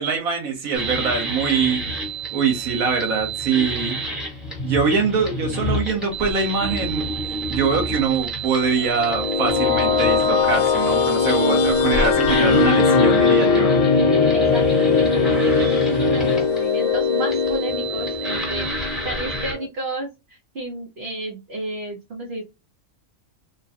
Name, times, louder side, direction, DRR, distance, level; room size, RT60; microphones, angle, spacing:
voice 1, 0.0-1.8 2.3-4.0 4.6-7.1 7.5-13.7, right 5 dB, 90° right, 1.5 m, -23 dB
sound 1, 0.7-19.5, right 1 dB, ahead, 1.0 m, -28 dB
sound 2, 8.8-19.7, left 5 dB, 70° left, 0.9 m, -20 dB
voice 2, 14.3-22.4, right 1 dB, 50° right, 1.0 m, -32 dB
3.7 x 2.3 x 2.7 m
omnidirectional pair, 1.4 m